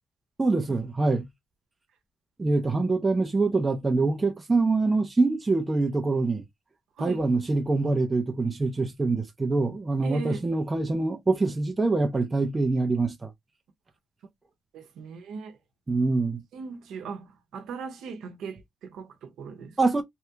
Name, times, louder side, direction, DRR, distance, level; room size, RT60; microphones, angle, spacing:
voice 1, 0.4-1.3 2.4-6.4 7.0-13.3 15.9-16.4 19.8-20.0, right 3 dB, 15° right, 0.5 m, -25 dB
voice 2, 10.0-10.4 14.7-15.6 16.5-19.8, right 5 dB, 90° right, 0.7 m, -38 dB
3.2 x 2.3 x 2.8 m
cardioid pair, 155°, 0 cm